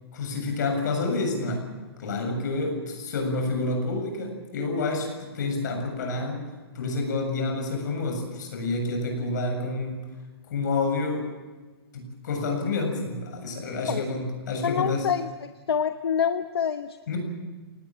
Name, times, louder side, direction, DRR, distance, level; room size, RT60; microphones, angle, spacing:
voice 1, 0.1-1.7 2.0-6.4 6.7-10.1 10.5-11.3 11.9-15.1 17.1-17.2, left 3 dB, 45° left, 3 dB, 7.3 m, -28 dB
voice 2, 14.6-15.3 15.7-16.9, left 7 dB, 70° left, 9 dB, 1.1 m, -26 dB
27.0 x 19.0 x 7.5 m, 1.3 s
hypercardioid pair, 175°, 13 cm